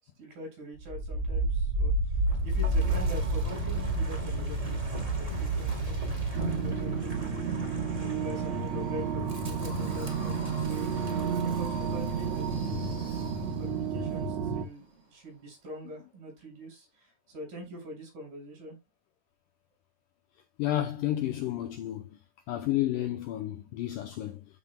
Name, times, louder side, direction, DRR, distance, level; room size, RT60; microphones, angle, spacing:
voice 1, 0.0-6.1 6.6-7.4 8.0-10.9 11.3-18.8, equal, 60° right, 7.1 m, -44 dB
Wind, 0.8-13.8, right 1 dB, 20° right, 0.9 m, -32 dB
sound 1, 6.3-14.7, right 6 dB, 85° right, 1.5 m, -31 dB
voice 2, 20.6-22.1 22.5-24.5, left 13 dB, 85° left, 1.9 m, -31 dB
13.5 x 5.8 x 2.2 m
omnidirectional pair, 4.7 m